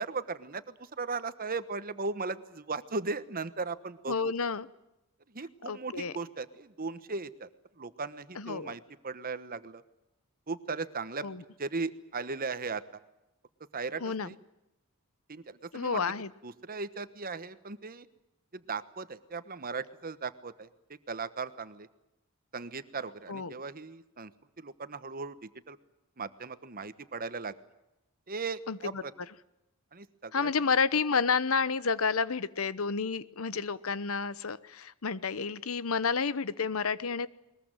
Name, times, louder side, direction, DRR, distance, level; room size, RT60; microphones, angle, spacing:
voice 1, 0.0-4.1 5.3-7.5 7.8-9.8 10.5-11.3 11.6-12.8 13.7-14.4 15.3-16.0 16.4-18.1 18.5-20.7 21.1-21.9 22.5-24.3 24.6-25.8 26.2-27.5 28.3-29.1 29.9-30.5 33.5-33.6, right 4 dB, 45° right, 13 dB, 1.2 m, -37 dB
voice 2, 4.1-4.7 5.7-6.1 8.3-8.7 11.2-11.4 14.0-14.4 15.7-16.3 23.3-23.5 28.7-29.0 30.3-37.3, left 5 dB, 70° left, 17 dB, 0.9 m, -30 dB
21.5 x 21.0 x 9.0 m, 0.92 s
head